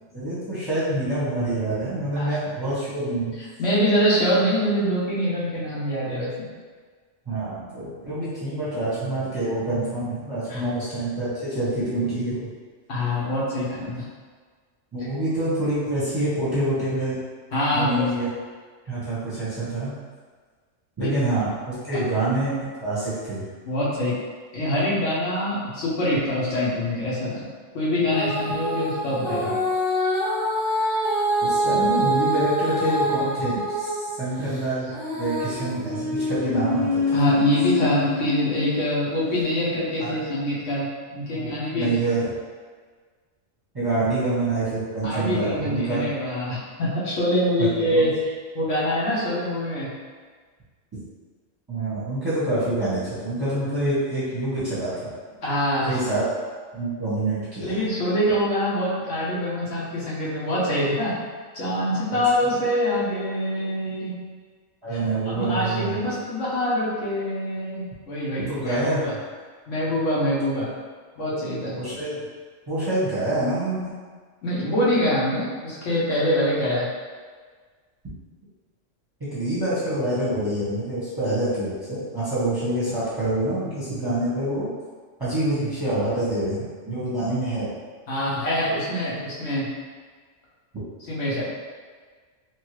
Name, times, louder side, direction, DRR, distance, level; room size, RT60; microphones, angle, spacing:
voice 1, 0.1-3.3 7.3-12.4 14.9-17.2 17.7-18.3 18.8-20.0 21.0-23.4 31.4-34.9 35.2-37.2 40.0-40.2 41.3-42.3 43.7-46.1 47.6-48.0 51.7-54.9 55.9-56.3 56.7-57.8 62.1-62.2 64.8-66.0 68.4-69.0 71.8-72.2 72.7-73.9 79.3-84.7 85.2-87.7, right 1 dB, 20° right, -11 dB, 0.8 m, -26 dB
voice 2, 3.6-6.5 10.5-10.7 12.9-14.1 17.5-18.0 21.0-21.1 21.9-22.0 23.7-24.2 24.5-27.5 27.7-29.6 37.1-41.9 45.0-48.1 48.5-49.9 55.4-56.0 57.6-61.1 61.5-64.1 64.9-65.0 65.3-69.1 69.7-70.7 71.2-71.7 74.4-76.9 88.1-89.7 91.1-91.4, equal, 75° left, -8 dB, 1.3 m, -24 dB
Female singing, 28.1-34.0 34.5-38.8 39.4-39.5, left 1 dB, 50° left, 1.1 m, -25 dB
3.0 x 2.7 x 3.0 m, 1.5 s
omnidirectional pair, 1.3 m